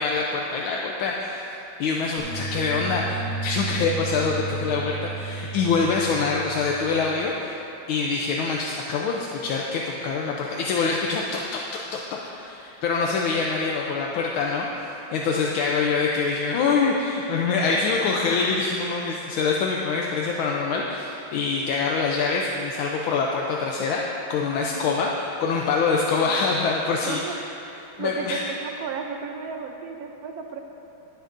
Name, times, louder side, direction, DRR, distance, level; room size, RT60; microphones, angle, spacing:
voice 1, 0.0-1.5 1.8-7.5 7.9-11.6 11.9-24.0 24.3-27.3 28.0-28.4, left 4 dB, 80° left, -2 dB, 1.5 m, -25 dB
sound 1, 2.2-7.2, right 4 dB, 45° right, 1.6 m, -33 dB
voice 2, 24.6-25.0 27.0-27.4 27.7-30.6, right 6 dB, 70° right, 4 dB, 0.8 m, -34 dB
18.0 x 7.9 x 2.6 m, 2.9 s
omnidirectional pair, 2.3 m